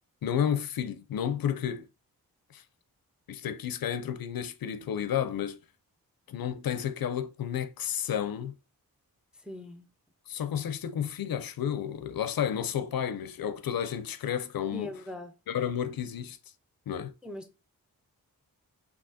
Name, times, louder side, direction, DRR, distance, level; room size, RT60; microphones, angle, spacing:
voice 1, 0.2-1.9 2.5-2.6 3.3-5.6 6.3-8.5 10.3-14.9 15.5-16.4 16.9-17.1, left 9 dB, 65° left, 0.5 m, -31 dB
voice 2, 9.3-9.9 14.7-15.3 17.2-17.5, left 1 dB, 5° right, 0.4 m, -41 dB
3.6 x 2.7 x 2.6 m
cardioid pair, 55°, 38 cm